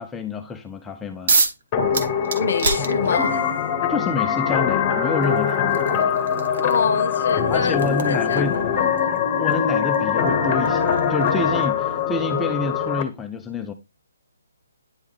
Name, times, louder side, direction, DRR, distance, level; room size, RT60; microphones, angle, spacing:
voice 1, 0.0-1.3 3.9-5.9 7.5-8.5 9.4-13.7, left 3 dB, 10° left, 0.6 m, -28 dB
sound 1, 1.3-1.6 1.9-3.5 4.6-4.7 5.2-11.9, right 4 dB, 55° right, 1.2 m, -29 dB
sound 2, 1.7-13.0, left 7 dB, 25° left, 1.3 m, -22 dB
voice 2, 2.4-3.5 6.6-9.1, left 5 dB, 60° left, 0.8 m, -26 dB
9.7 x 3.5 x 3.2 m
hypercardioid pair, 150°, 0 cm